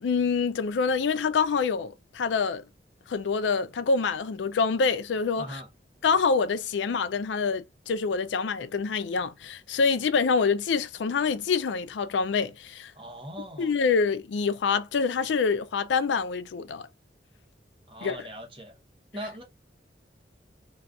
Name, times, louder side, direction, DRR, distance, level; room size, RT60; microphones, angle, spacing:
voice 1, 0.0-2.6 3.1-5.6 6.0-12.9 13.6-16.8 18.0-18.1, left 5 dB, 85° left, 0.4 m, -26 dB
voice 2, 5.4-5.7 13.0-13.7 17.9-18.7 19.1-19.4, equal, 30° right, 0.8 m, -40 dB
2.4 x 2.3 x 3.5 m
head